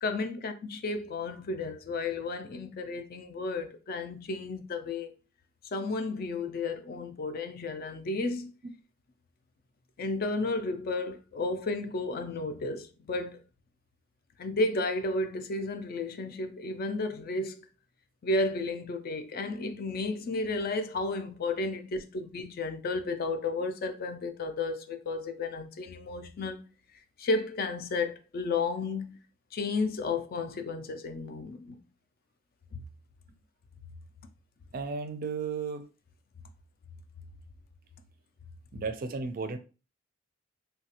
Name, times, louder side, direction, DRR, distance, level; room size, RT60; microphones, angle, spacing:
voice 1, 0.0-5.1 5.7-8.5 10.0-13.4 14.4-17.6 18.2-26.6 27.2-29.2 29.5-31.8, left 3 dB, 50° left, 0.4 m, -32 dB
voice 2, 34.7-35.8 38.7-39.6, right 4 dB, 45° right, 0.4 m, -34 dB
3.2 x 2.3 x 2.8 m
head